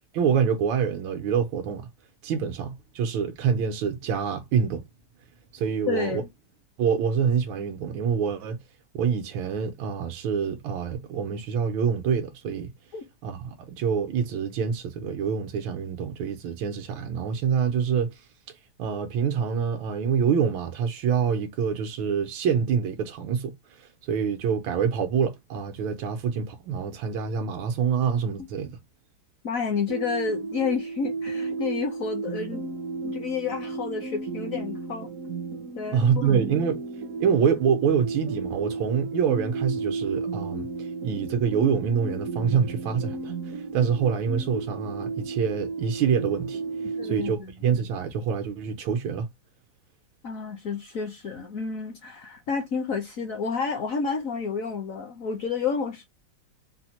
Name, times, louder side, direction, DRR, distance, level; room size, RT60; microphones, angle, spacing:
voice 1, 0.1-1.9 2.2-4.8 5.5-6.2 6.8-8.6 8.9-12.7 13.2-18.1 18.8-23.5 23.8-28.8 35.9-36.8 37.2-46.6 47.0-49.3, right 7 dB, 85° right, 1.5 m, -26 dB
voice 2, 5.9-6.3 12.9-13.0 28.4-28.5 29.4-32.7 33.0-35.1 35.8-36.4 47.0-47.5 50.2-56.1, left 5 dB, 60° left, 0.9 m, -30 dB
sound 1, 29.9-47.4, right 4 dB, 65° right, 0.8 m, -33 dB
4.4 x 2.0 x 2.8 m
omnidirectional pair, 2.1 m